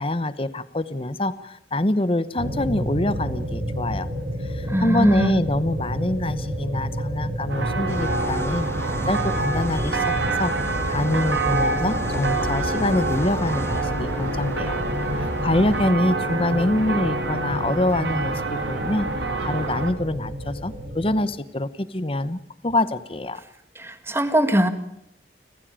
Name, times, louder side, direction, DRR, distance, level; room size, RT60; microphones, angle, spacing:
voice 1, 0.0-4.1 4.4-19.1 19.4-23.4, left 1 dB, 30° left, 14 dB, 1.0 m, -25 dB
sound 1, 2.4-21.2, equal, 60° right, 5.4 m, -31 dB
voice 2, 4.7-5.4 23.8-24.7, equal, 15° right, 9 dB, 2.0 m, -21 dB
sound 2, 7.5-19.9, right 3 dB, 90° right, 3.2 m, -27 dB
sound 3, 7.9-15.9, equal, 15° left, 1.3 m, -33 dB
30.0 x 15.5 x 8.9 m, 0.77 s
head